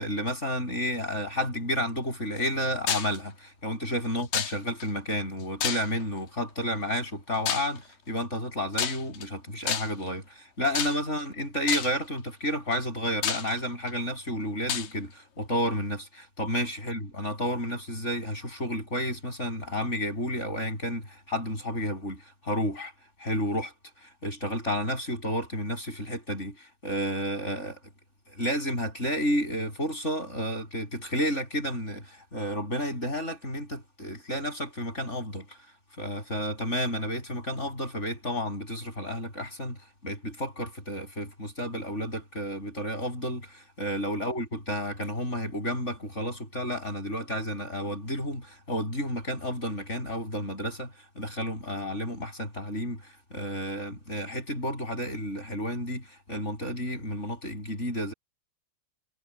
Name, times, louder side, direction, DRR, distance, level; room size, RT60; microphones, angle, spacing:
voice 1, 0.0-22.9 23.2-23.7 24.0-26.5 26.8-27.8 28.3-35.4 36.0-39.8 40.0-50.9 51.2-56.0 56.3-58.1, equal, 20° left, 8.2 m, -31 dB
sound 1, 2.9-3.2 4.3-4.9 5.6-6.1 7.5-7.8 8.7-9.3 9.7-10.1 10.8-11.2 11.7-12.0 12.7-12.8 13.2-13.9 14.7-14.9, left 9 dB, 80° left, 3.7 m, -29 dB
omnidirectional pair, 3.9 m